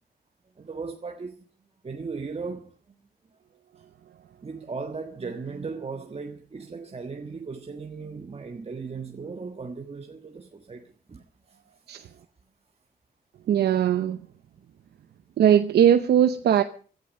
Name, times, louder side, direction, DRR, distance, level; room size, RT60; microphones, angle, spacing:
voice 1, 0.6-1.3 1.8-3.0 3.8-3.9 4.4-11.6 12.2-12.3, right 4 dB, 40° right, 1.5 m, -37 dB
voice 2, 13.5-14.3 15.4-16.6, right 9 dB, 80° right, 0.8 m, -20 dB
15.5 x 12.5 x 6.4 m
cardioid pair, 70°, 17 cm